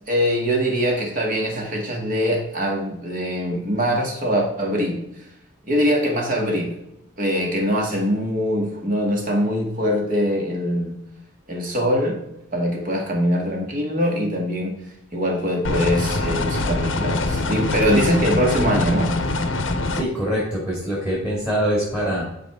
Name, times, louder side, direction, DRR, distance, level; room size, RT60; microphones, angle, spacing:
voice 1, 0.1-5.0 5.6-6.8 7.2-10.9 11.5-12.2 12.5-14.7 15.1-19.1, equal, 40° right, 0 dB, 1.8 m, -22 dB
sound 1, 15.6-20.0, left 2 dB, 65° left, 0.8 m, -24 dB
voice 2, 19.9-22.2, equal, 10° right, -6 dB, 2.1 m, -24 dB
11.0 x 4.6 x 3.6 m, 0.81 s
head